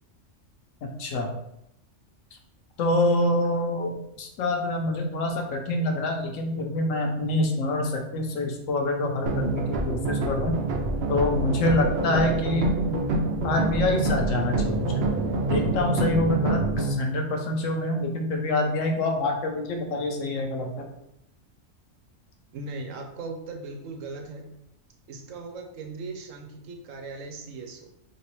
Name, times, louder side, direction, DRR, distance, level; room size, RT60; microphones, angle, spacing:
voice 1, 1.0-1.3 2.8-10.6 11.1-15.0 15.5-20.9, left 1 dB, 85° left, 3 dB, 1.0 m, -26 dB
sound 1, 9.3-16.9, right 3 dB, 65° right, 0.7 m, -27 dB
voice 2, 12.1-12.4 22.5-24.5 25.1-27.9, right 3 dB, 85° right, 3 dB, 1.0 m, -38 dB
3.1 x 2.9 x 3.0 m, 0.79 s
omnidirectional pair, 1.3 m